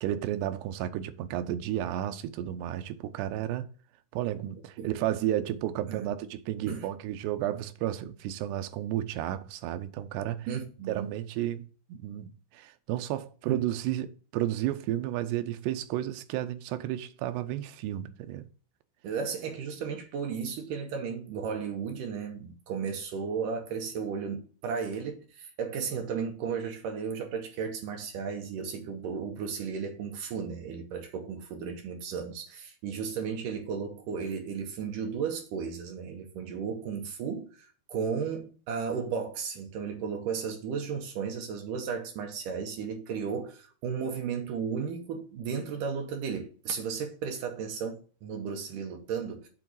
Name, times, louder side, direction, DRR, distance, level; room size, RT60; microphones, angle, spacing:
voice 1, 0.0-3.7 4.1-10.5 10.9-18.5, right 12 dB, 85° right, 2.8 m, -32 dB
voice 2, 10.5-11.1 13.5-13.6 19.0-49.5, right 6 dB, 70° right, 2.2 m, -34 dB
8.2 x 4.0 x 6.1 m
omnidirectional pair, 4.7 m